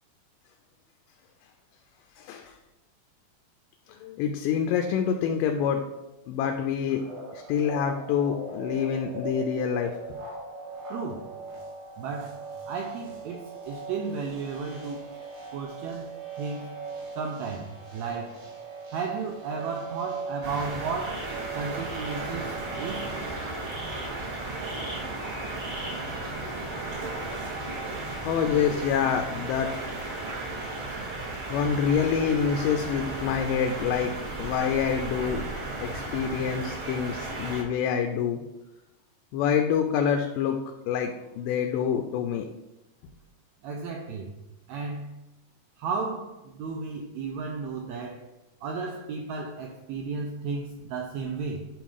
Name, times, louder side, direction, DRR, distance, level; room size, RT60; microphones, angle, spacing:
voice 1, 2.2-2.5 4.0-5.8 6.3-7.1 7.3-10.0 28.3-29.7 31.5-34.1 34.4-35.4 35.8-38.4 39.3-40.6 40.9-42.5, left 7 dB, 90° left, 4 dB, 2.2 m, -26 dB
sound 1, 6.9-23.1, right 3 dB, 70° right, 3.3 m, -40 dB
voice 2, 10.9-11.3 12.0-12.4 12.7-15.1 15.5-16.1 16.4-16.7 17.2-18.4 18.9-23.1 27.5-27.9 43.6-44.3 44.7-45.2 45.8-48.3 48.6-51.7, right 4 dB, 85° right, 2 dB, 1.6 m, -34 dB
sound 2, 20.4-37.6, right 2 dB, 50° right, 2.0 m, -34 dB
9.1 x 3.0 x 4.9 m, 0.96 s
omnidirectional pair, 3.8 m